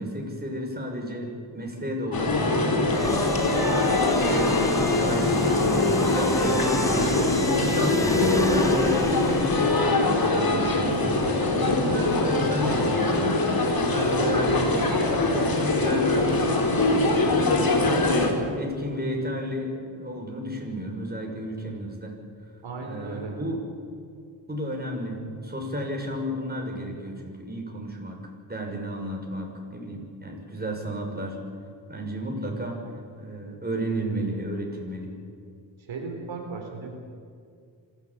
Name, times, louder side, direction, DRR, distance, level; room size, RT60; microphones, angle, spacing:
voice 1, 0.0-3.4 3.7-7.2 7.6-16.5 17.1-22.2 22.8-23.6 24.5-31.4 31.9-32.8 33.1-35.1, equal, 20° right, 0 dB, 6.8 m, -32 dB
sound 1, 2.1-18.3, left 2 dB, 50° left, 4.3 m, -23 dB
sound 2, 2.9-9.8, left 1 dB, 5° left, 1.4 m, -29 dB
voice 2, 22.6-23.3 35.8-36.9, right 4 dB, 80° right, 2 dB, 4.0 m, -36 dB
26.5 x 13.5 x 8.8 m, 2.3 s
cardioid pair, 60°, 45 cm